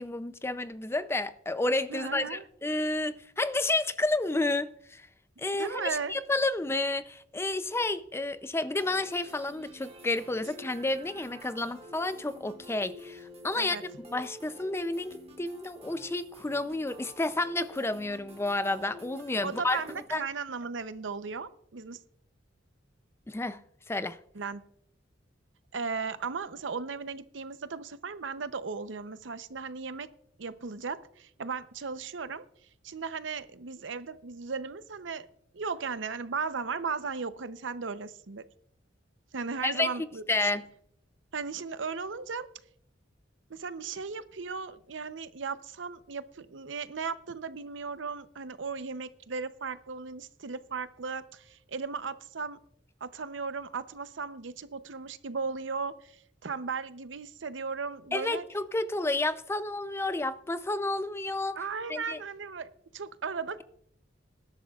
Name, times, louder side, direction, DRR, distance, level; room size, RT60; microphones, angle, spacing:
voice 1, 0.0-5.1 5.4-13.8 14.0-19.8 20.1-20.2 23.3-23.6 23.9-24.2 39.6-39.9 40.3-40.6 58.1-61.6 61.9-62.2, left 2 dB, 15° left, 0.4 m, -30 dB
voice 2, 1.9-2.4 5.6-6.1 13.6-13.8 19.4-22.0 24.3-24.6 25.7-30.1 30.4-32.4 32.8-35.3 35.5-38.4 39.3-40.2 41.3-42.5 43.5-52.6 53.0-58.4 61.6-63.6, right 5 dB, 75° right, 0.7 m, -36 dB
sound 1, 8.8-20.0, equal, 35° right, 1.6 m, -49 dB
19.5 x 11.5 x 2.4 m
head